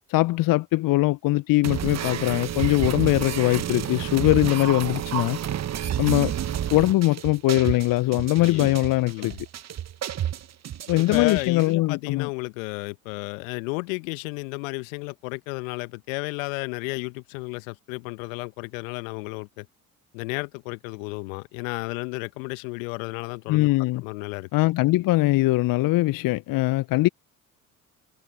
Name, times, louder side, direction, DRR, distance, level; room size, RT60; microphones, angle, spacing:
voice 1, 0.1-5.4 6.0-6.3 6.7-9.3 10.9-12.3 23.5-24.0 24.5-27.1, left 19 dB, 50° left, 1.0 m, -21 dB
sound 1, 1.6-11.7, right 10 dB, 40° right, 1.3 m, -30 dB
voice 2, 8.3-8.8 9.0-9.4 11.0-19.7 20.1-24.5, left 29 dB, 65° left, 1.7 m, -33 dB
figure-of-eight pair, 50°, 42 cm